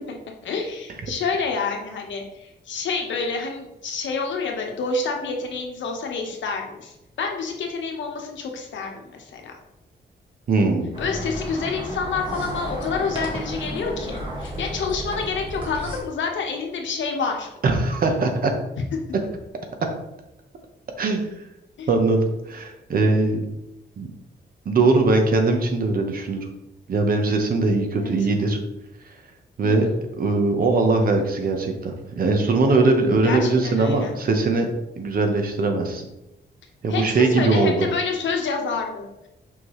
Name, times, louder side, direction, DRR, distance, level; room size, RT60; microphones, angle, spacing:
voice 1, 0.4-9.5 11.0-17.5 21.8-21.9 27.9-28.1 29.6-29.8 33.2-34.1 36.9-39.3, left 4 dB, 85° left, 2 dB, 1.2 m, -28 dB
voice 2, 10.5-10.9 17.6-18.5 21.0-21.3 21.9-23.4 24.0-24.1 24.6-26.5 26.9-28.6 29.6-29.9 30.2-34.7 35.0-36.0 36.8-37.9, right 3 dB, 50° right, 5 dB, 1.0 m, -20 dB
sound 1, 10.9-16.0, equal, 25° right, 1.6 m, -32 dB
6.0 x 5.7 x 3.1 m, 0.91 s
wide cardioid pair, 165°, 19 cm